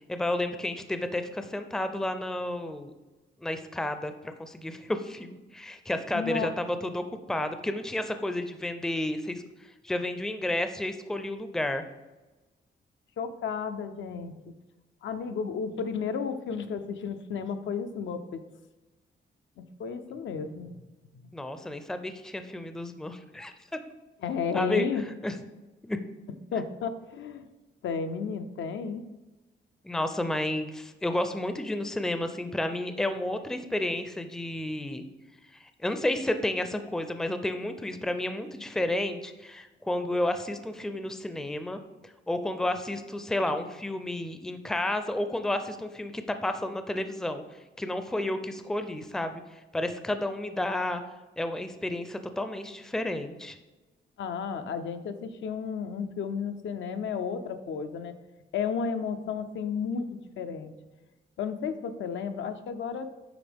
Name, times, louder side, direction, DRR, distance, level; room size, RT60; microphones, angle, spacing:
voice 1, 0.1-2.9 3.4-9.4 9.8-11.9 21.3-23.5 24.5-24.9 25.2-25.3 25.8-26.0 29.8-35.0 35.8-41.8 42.3-47.4 47.8-49.4 49.7-51.0 51.4-53.6, left 1 dB, 5° left, 8 dB, 0.4 m, -31 dB
voice 2, 6.1-6.6 13.2-14.4 15.0-18.4 19.8-20.8 21.1-21.2 24.2-25.0 26.5-27.5 27.8-29.0 54.2-58.1 58.5-60.1 60.4-60.7 61.4-63.1, left 6 dB, 80° left, 8 dB, 0.5 m, -32 dB
9.7 x 3.5 x 3.5 m, 1.1 s
cardioid pair, 95°, 19 cm